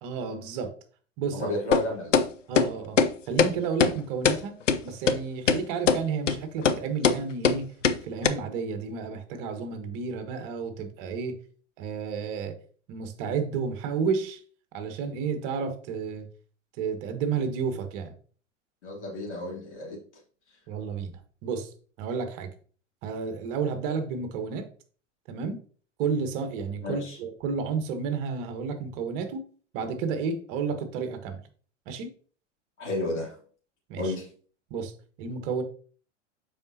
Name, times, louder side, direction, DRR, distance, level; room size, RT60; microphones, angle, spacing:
voice 1, 0.0-0.7 1.2-1.5 2.5-3.0 3.3-4.5 4.8-7.7 8.0-11.4 11.8-12.5 12.9-14.4 14.7-16.2 16.8-18.1 20.7-21.1 21.4-21.7 22.0-22.5 23.0-24.6 25.3-25.6 26.0-29.4 29.7-31.4 31.9-32.1 33.9-34.1 34.7-34.9 35.2-35.6, right 5 dB, 45° right, 7 dB, 1.3 m, -31 dB
voice 2, 1.3-2.2 18.8-20.0 26.8-27.2 32.8-33.4 34.0-34.3, left 1 dB, 70° left, -3 dB, 3.1 m, -32 dB
sound 1, 1.7-1.8 2.1-2.3 2.6-2.7 3.0-3.1 3.4-3.5 3.8-3.9 4.3-4.4 4.7-4.8 5.1-5.2 5.5-5.6 5.9-6.0 6.3-6.4 6.7-6.8 7.0-7.2 7.4-7.6 7.8-8.0 8.2-8.3, left 6 dB, 85° left, 0.6 m, -20 dB
7.1 x 5.1 x 2.8 m, 0.43 s
figure-of-eight pair, 95°, 36 cm